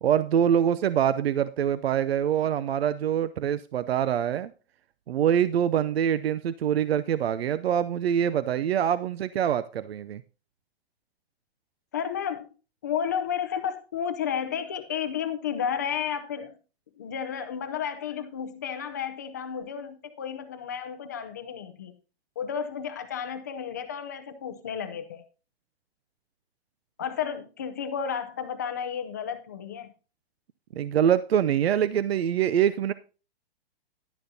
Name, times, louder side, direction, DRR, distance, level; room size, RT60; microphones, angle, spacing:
voice 1, 0.0-4.5 5.1-10.2 30.8-32.9, right 9 dB, 80° right, 15 dB, 0.6 m, -24 dB
voice 2, 11.9-12.5 12.8-16.6 17.0-21.9 22.4-25.2 27.0-29.9, left 8 dB, 20° left, 9 dB, 0.5 m, -32 dB
11.5 x 10.5 x 2.7 m, 0.34 s
hypercardioid pair, 175°, 30 cm